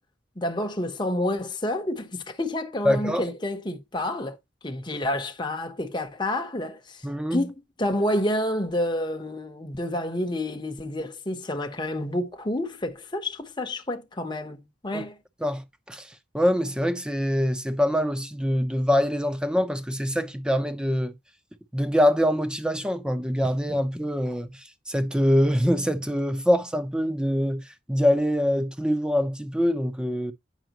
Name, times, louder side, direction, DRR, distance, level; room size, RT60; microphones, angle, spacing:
voice 1, 0.4-4.4 4.6-7.0 7.3-15.2, left 1 dB, 25° left, 1.0 m, -29 dB
voice 2, 2.8-3.3 7.0-7.4 14.9-15.0 15.4-21.1 21.7-30.3, equal, 5° right, 0.8 m, -24 dB
9.2 x 6.1 x 3.0 m
head